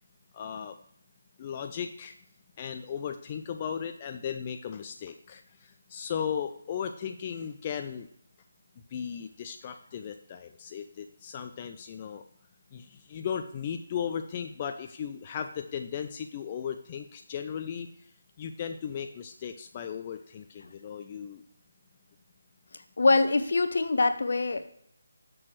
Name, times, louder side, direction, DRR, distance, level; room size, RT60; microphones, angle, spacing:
voice 1, 0.3-0.8 1.4-2.1 2.6-8.1 8.9-12.2 12.7-17.9 18.4-21.4, left 8 dB, 30° left, 6 dB, 0.3 m, -36 dB
voice 2, 23.0-24.7, left 3 dB, 65° left, 10 dB, 0.6 m, -24 dB
7.4 x 6.1 x 3.1 m, 0.69 s
figure-of-eight pair, 160°, 0 cm